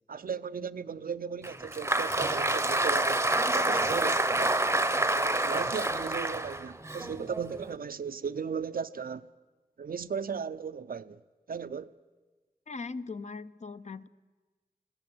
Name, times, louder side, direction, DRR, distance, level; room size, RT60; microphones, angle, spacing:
voice 1, 0.1-3.3 3.5-4.6 5.1-9.3 9.8-11.2 11.5-11.9, right 6 dB, 75° right, 0.5 m, -36 dB
Applause, 1.4-7.7, right 2 dB, 15° right, 0.7 m, -28 dB
voice 2, 12.7-14.1, left 4 dB, 50° left, 0.6 m, -39 dB
21.0 x 16.5 x 7.8 m
wide cardioid pair, 90°, 15 cm